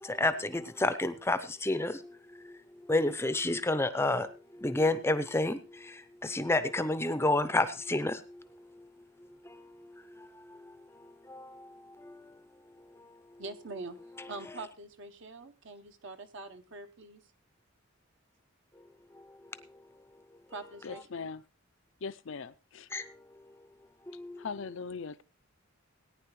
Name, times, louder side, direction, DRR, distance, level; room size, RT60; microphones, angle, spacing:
voice 1, 0.0-2.6 2.9-8.8 9.2-10.7 11.0-12.3 19.1-19.6 22.9-23.2 24.1-24.4, left 2 dB, 10° left, 12 dB, 0.6 m, -31 dB
voice 2, 13.4-14.0 14.3-17.2 20.5-21.3, right 3 dB, 55° right, 7 dB, 0.9 m, -44 dB
voice 3, 20.8-21.4 22.0-22.9 24.4-25.2, left 5 dB, 60° left, 15 dB, 0.5 m, -40 dB
18.0 x 9.8 x 3.1 m, 0.34 s
head